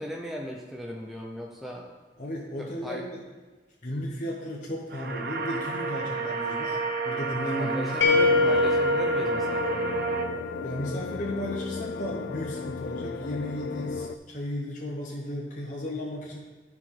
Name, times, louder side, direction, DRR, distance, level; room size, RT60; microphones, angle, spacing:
voice 1, 0.0-1.9 2.6-3.0 7.6-10.0, equal, ahead, -2 dB, 0.6 m, -37 dB
voice 2, 2.2-3.2 3.8-6.8 7.0-8.7 10.6-16.4, left 1 dB, 45° left, -3 dB, 1.0 m, -34 dB
sound 1, 4.9-10.2, right 4 dB, 60° right, 0.8 m, -31 dB
sound 2, 8.0-10.9, left 2 dB, 90° left, 0.9 m, -25 dB
sound 3, 8.1-14.2, left 4 dB, 70° left, 0.4 m, -36 dB
12.5 x 4.7 x 3.8 m, 1.3 s
head